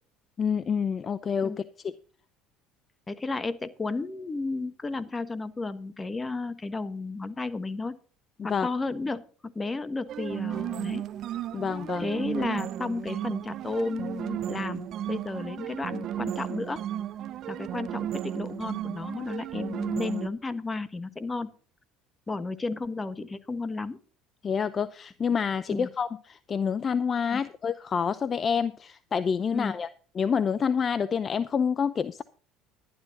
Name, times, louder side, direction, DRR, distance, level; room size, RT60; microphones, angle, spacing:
voice 1, 0.4-1.9 8.4-8.7 11.5-12.1 24.4-29.9 30.2-32.2, left 6 dB, 35° left, 15 dB, 0.6 m, -28 dB
voice 2, 3.1-8.0 8.4-11.0 12.0-16.8 17.5-21.5 22.3-24.0 25.7-25.9 27.3-27.4 29.5-29.7, left 3 dB, 20° left, 13 dB, 1.2 m, -33 dB
sound 1, 10.1-20.3, right 11 dB, 55° right, 0.6 m, -34 dB
11.5 x 11.0 x 4.0 m, 0.40 s
supercardioid pair, 95°, 0 cm